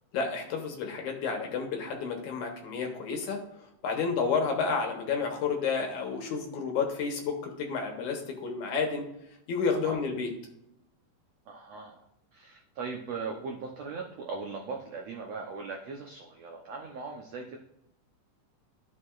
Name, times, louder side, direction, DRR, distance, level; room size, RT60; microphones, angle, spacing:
voice 1, 0.1-3.4 3.8-9.1 9.5-10.3, left 5 dB, 65° left, 2 dB, 2.3 m, -30 dB
voice 2, 11.5-12.1 12.3-17.6, right 4 dB, 75° right, 1 dB, 1.5 m, -39 dB
13.0 x 6.5 x 2.5 m, 0.81 s
omnidirectional pair, 4.1 m